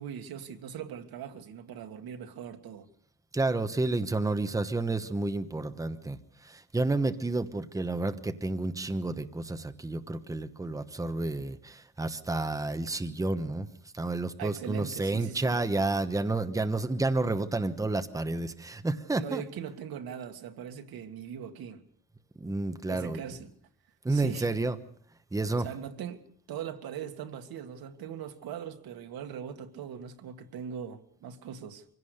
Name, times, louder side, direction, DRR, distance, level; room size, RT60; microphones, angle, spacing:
voice 1, 0.0-2.9 14.4-15.6 19.2-21.8 22.9-23.5 24.1-24.5 25.6-31.9, right 8 dB, 80° right, 1.9 m, -40 dB
voice 2, 3.3-13.7 13.9-19.4 22.4-23.2 24.0-24.8 25.3-25.7, right 2 dB, 10° right, 1.1 m, -30 dB
24.5 x 17.0 x 6.6 m
cardioid pair, 155°, 36 cm